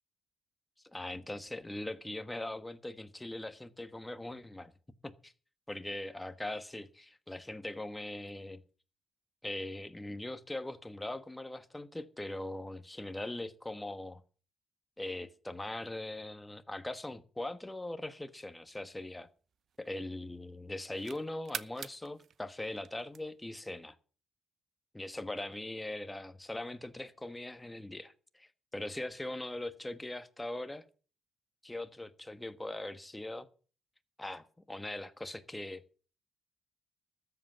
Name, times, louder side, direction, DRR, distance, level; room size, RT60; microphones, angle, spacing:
voice 1, 0.9-4.7 5.0-5.3 5.7-8.6 9.4-14.2 15.0-19.3 19.8-23.9 24.9-30.8 31.6-33.5 34.2-35.8, left 1 dB, 10° left, 1.3 m, -41 dB
sound 1, 18.5-20.2 20.6-23.6, right 8 dB, 60° right, 0.7 m, -46 dB
13.5 x 8.0 x 7.3 m
cardioid pair, 90°, 0 cm